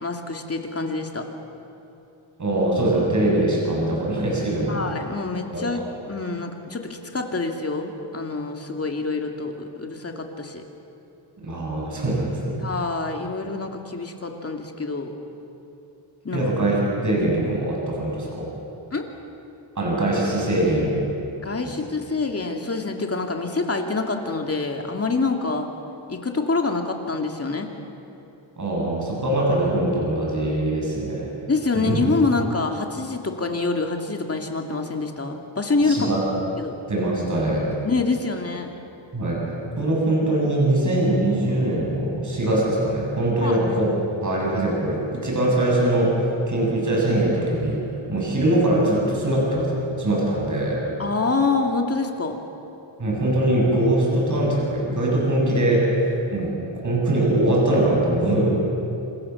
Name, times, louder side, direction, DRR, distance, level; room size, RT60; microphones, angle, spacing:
voice 1, 0.0-1.3 4.7-10.6 12.6-15.1 16.2-16.4 18.9-19.1 21.4-25.7 26.1-27.7 31.5-36.1 36.6-36.8 37.8-38.7 43.4-43.6 51.0-52.4, left 3 dB, 30° left, 3 dB, 2.7 m, -26 dB
voice 2, 2.4-4.8 5.5-5.8 11.4-12.5 16.3-18.5 19.8-21.0 28.6-31.3 31.7-32.1 35.9-36.2 36.9-37.7 39.1-39.4 39.8-43.9 44.2-47.8 48.1-50.8 53.0-56.5 56.8-58.5, right 1 dB, 35° right, -2 dB, 7.8 m, -22 dB
28.0 x 26.5 x 7.3 m, 2.9 s
wide cardioid pair, 145°, 49 cm